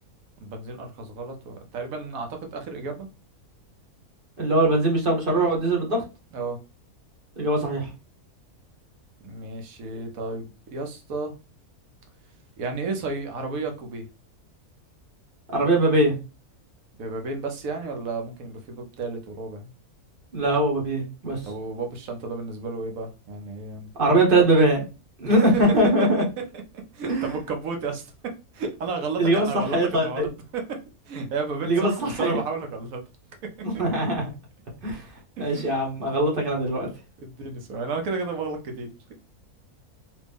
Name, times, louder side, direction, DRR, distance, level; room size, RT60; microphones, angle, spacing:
voice 1, 0.4-3.1 6.3-6.6 9.2-11.3 12.6-14.1 17.0-19.7 21.5-23.9 24.4-24.5 25.2-25.6 26.0-26.1 26.9-28.1 28.5-30.6 31.1-33.0 35.4-35.7 37.2-39.1, right 4 dB, 70° right, 4 dB, 1.1 m, -32 dB
voice 2, 4.4-6.0 7.4-7.9 15.5-16.1 20.3-21.4 24.0-24.8 25.2-26.2 27.1-27.3 29.2-29.5 29.7-30.3 31.6-32.4 33.6-34.3 34.8-35.0 35.4-36.9, right 1 dB, 40° right, -2 dB, 1.1 m, -21 dB
3.0 x 2.6 x 3.4 m, 0.30 s
omnidirectional pair, 1.5 m